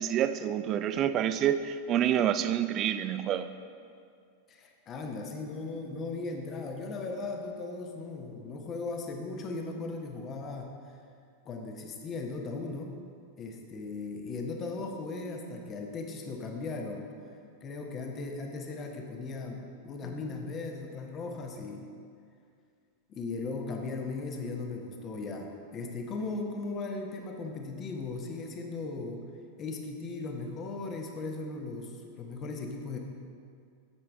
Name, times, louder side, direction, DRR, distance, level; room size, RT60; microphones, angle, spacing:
voice 1, 0.0-3.5, right 10 dB, 35° right, 12 dB, 0.3 m, -28 dB
voice 2, 4.5-10.7 11.4-13.0 13.4-17.1 17.6-21.9 23.1-29.2 29.6-33.0, left 3 dB, 30° left, 3 dB, 0.9 m, -37 dB
8.2 x 7.1 x 3.4 m, 2.3 s
figure-of-eight pair, 90°, 0 cm